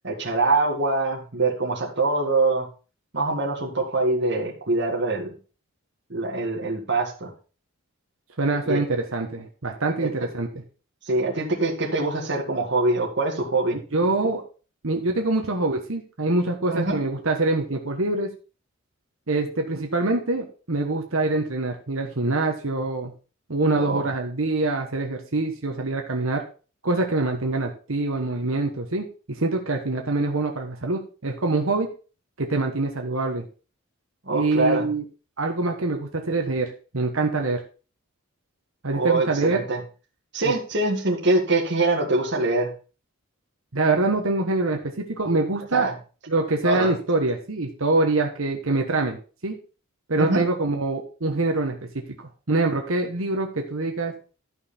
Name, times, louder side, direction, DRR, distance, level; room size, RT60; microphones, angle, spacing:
voice 1, 0.0-2.7 3.1-5.4 6.1-7.3 8.6-8.8 10.0-10.1 11.0-13.8 16.7-17.0 23.7-24.1 34.3-34.9 38.9-39.8 40.3-42.7 45.7-45.9 46.6-46.9 50.2-50.4, right 2 dB, 55° right, -2 dB, 2.0 m, -24 dB
voice 2, 8.4-10.5 13.9-14.4 14.8-18.3 19.3-23.1 23.5-26.4 26.8-31.9 32.4-33.4 34.3-35.0 35.4-37.6 38.8-39.6 40.4-40.5 43.7-45.9 46.3-49.2 49.4-49.6 50.1-52.0 52.5-54.1, right 2 dB, 70° right, 2 dB, 1.3 m, -25 dB
12.5 x 5.6 x 4.3 m, 0.36 s
head